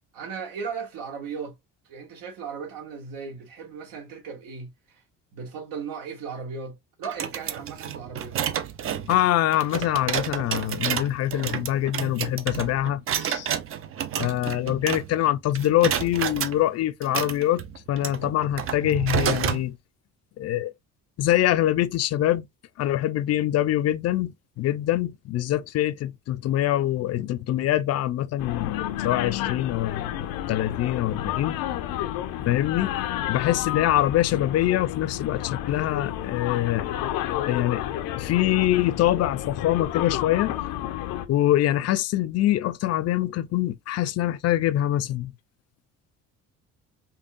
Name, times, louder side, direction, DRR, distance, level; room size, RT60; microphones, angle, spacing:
voice 1, 0.1-1.5 1.9-5.0 5.3-8.4, right 5 dB, 80° right, 1.1 m, -36 dB
sound 1, 7.0-15.3 15.6-16.6 17.0-19.6, right 9 dB, 40° right, 0.5 m, -30 dB
voice 2, 9.1-13.5 14.2-17.6 17.9-19.8 20.4-20.7 21.2-22.5 22.8-31.6 32.5-32.9 33.3-36.9 37.5-37.8 38.2-40.5 41.3-45.3, left 13 dB, 50° left, 0.4 m, -24 dB
sound 2, 28.4-41.3, left 12 dB, 90° left, 0.7 m, -31 dB
5.3 x 2.2 x 2.4 m
cardioid pair, 130°, 34 cm